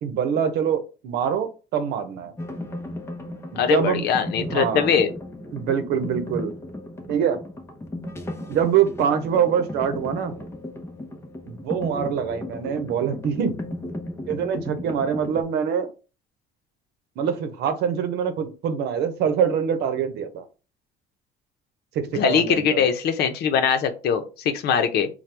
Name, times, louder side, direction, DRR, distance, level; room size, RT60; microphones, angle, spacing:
voice 1, 0.0-2.3 3.5-4.0 4.5-4.9 5.5-6.5 7.1-7.4 8.5-10.3 11.5-13.5 14.3-15.9 17.2-20.4 21.9-22.8, right 8 dB, 80° right, 8 dB, 0.8 m, -24 dB
sound 1, 2.4-15.4, left 1 dB, 15° left, 0.7 m, -35 dB
voice 2, 3.6-5.1 22.1-25.1, left 7 dB, 75° left, 8 dB, 0.7 m, -22 dB
4.4 x 2.3 x 3.4 m, 0.32 s
cardioid pair, 110°, 17 cm